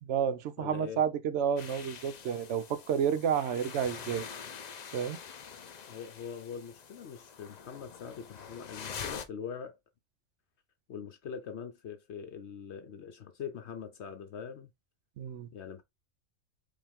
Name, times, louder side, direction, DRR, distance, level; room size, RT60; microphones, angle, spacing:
voice 1, 0.0-4.3 4.9-5.2 15.2-15.5, right 8 dB, 65° right, 0.8 m, -30 dB
voice 2, 0.6-1.0 5.9-9.8 10.9-14.7 15.5-15.8, left 7 dB, 60° left, 0.9 m, -42 dB
sound 1, 1.6-9.2, left 7 dB, 80° left, 0.3 m, -45 dB
5.0 x 2.5 x 3.5 m
omnidirectional pair, 1.5 m